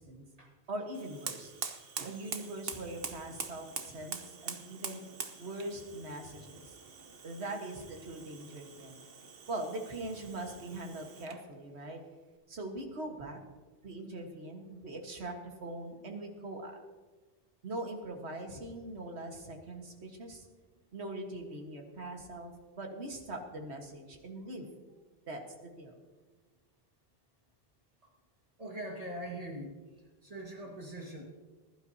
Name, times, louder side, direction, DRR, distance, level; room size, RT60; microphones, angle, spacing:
voice 1, 0.7-1.5 2.0-5.0 5.4-6.7 7.2-9.0 9.5-12.0 12.5-13.4 13.8-15.3 15.6-16.8 17.6-20.5 20.9-24.7 25.3-25.9, right 2 dB, 85° right, 2 dB, 1.8 m, -42 dB
Fire, 0.9-11.5, right 5 dB, 65° right, 1.2 m, -44 dB
voice 2, 28.6-29.7 30.2-31.2, right 1 dB, 35° right, -1 dB, 1.8 m, -41 dB
20.5 x 11.5 x 2.8 m, 1.3 s
omnidirectional pair, 1.1 m